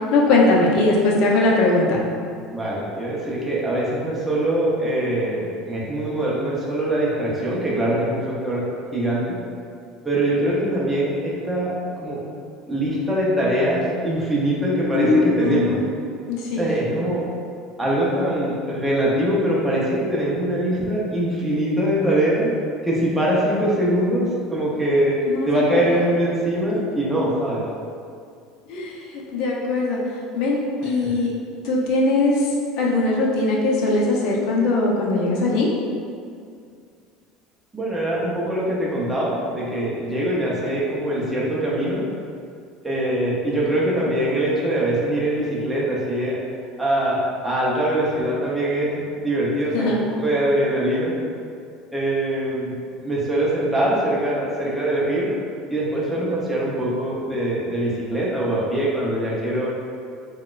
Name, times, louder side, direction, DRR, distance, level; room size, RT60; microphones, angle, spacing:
voice 1, 0.1-2.0 14.9-15.8 16.3-16.7 25.3-26.0 28.7-28.9 29.3-30.0 30.3-31.3 31.6-32.4 32.8-35.7 49.7-50.0, left 2 dB, 65° left, -2 dB, 0.6 m, -20 dB
voice 2, 2.5-9.4 10.0-11.7 12.0-12.2 12.7-15.8 16.6-17.3 17.8-22.6 22.8-27.7 30.8-31.2 37.7-42.1 42.8-46.4 46.8-51.1 51.9-52.8 53.0-55.3 55.7-59.8, right 1 dB, 10° right, -7 dB, 0.6 m, -23 dB
3.9 x 2.2 x 2.4 m, 2.2 s
cardioid pair, 140°, 0 cm